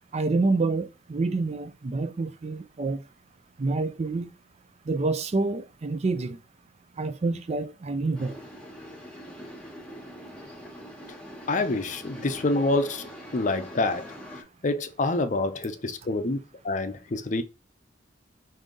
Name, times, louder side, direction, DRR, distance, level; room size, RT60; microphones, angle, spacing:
voice 1, 0.1-3.0 3.6-4.3 4.9-6.4 7.0-8.4, right 3 dB, 35° right, 0.4 m, -27 dB
sound 1, 8.1-14.4, equal, 5° left, 1.1 m, -43 dB
voice 2, 11.5-16.4 16.6-17.4, left 2 dB, 40° left, 0.5 m, -27 dB
5.2 x 2.7 x 3.8 m
head